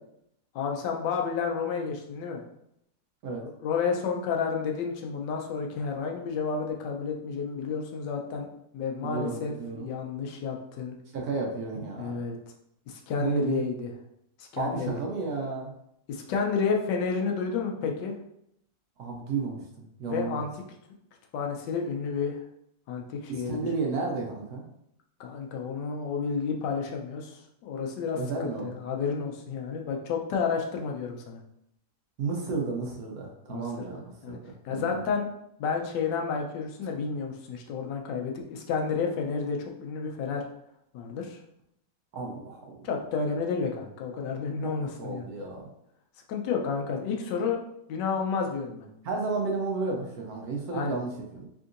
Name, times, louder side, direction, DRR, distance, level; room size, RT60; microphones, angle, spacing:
voice 1, 0.5-2.4 3.6-8.5 8.7-11.0 12.0-12.4 12.9-13.9 14.4-15.0 16.1-18.1 20.0-20.5 21.3-22.4 22.9-23.6 25.2-28.2 28.6-31.4 33.5-34.4 34.6-35.3 35.6-40.4 40.9-41.4 42.8-45.3 46.3-47.6 47.9-48.9 50.7-51.0, left 5 dB, 85° left, 2 dB, 1.3 m, -31 dB
voice 2, 9.0-9.9 11.1-12.2 13.2-13.6 14.6-15.7 19.0-20.5 23.3-24.6 28.1-28.7 32.2-35.0 42.1-42.9 44.6-44.7 45.0-45.7 49.0-51.5, right 4 dB, 65° right, 0 dB, 1.1 m, -32 dB
3.6 x 2.6 x 2.5 m, 0.76 s
omnidirectional pair, 1.8 m